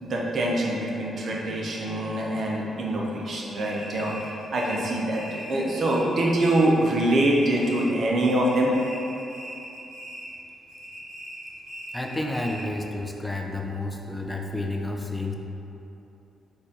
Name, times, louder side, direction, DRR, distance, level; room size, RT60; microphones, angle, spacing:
voice 1, 0.0-4.1 4.5-8.7, right 1 dB, 60° right, -3 dB, 0.7 m, -24 dB
sound 1, 3.5-6.9 7.2-8.1 8.3-10.4 10.7-12.8, equal, 75° right, 1.4 m, -40 dB
voice 2, 11.9-15.3, left 2 dB, 15° left, 1 dB, 0.5 m, -30 dB
4.0 x 2.6 x 3.8 m, 2.9 s
supercardioid pair, 55°, 0 cm